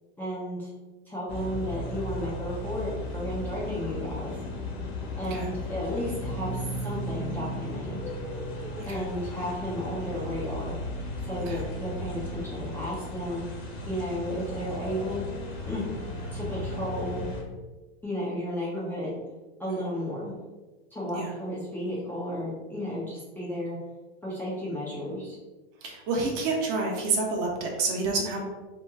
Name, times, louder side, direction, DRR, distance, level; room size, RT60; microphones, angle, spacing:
voice 1, 0.2-0.7 1.1-4.4 5.2-8.0 8.9-10.7 11.2-13.5 13.9-15.3 15.7-15.8 16.3-17.3 18.0-19.2 19.6-20.3 20.9-23.8 24.2-25.4, equal, 5° left, -8 dB, 0.4 m, -33 dB
sound 1, 1.3-17.4, left 1 dB, 40° left, 0.8 m, -35 dB
voice 2, 25.8-28.4, right 3 dB, 45° right, 0 dB, 0.9 m, -29 dB
3.0 x 2.1 x 3.5 m, 1.2 s
hypercardioid pair, 130°, 32 cm